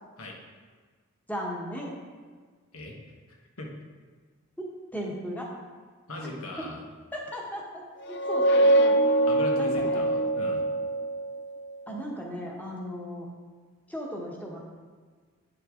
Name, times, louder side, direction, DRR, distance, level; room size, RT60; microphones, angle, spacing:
voice 1, 1.3-1.9 4.6-5.5 7.1-7.6 8.1-9.0 9.5-10.0 11.9-13.3 13.9-14.6, equal, 5° left, -2 dB, 1.2 m, -36 dB
voice 2, 3.3-3.7 6.1-6.8 9.3-10.7, left 1 dB, 80° left, 0 dB, 1.4 m, -39 dB
sound 1, 8.0-11.6, right 1 dB, 50° left, 0.4 m, -23 dB
9.5 x 6.6 x 3.8 m, 1.5 s
head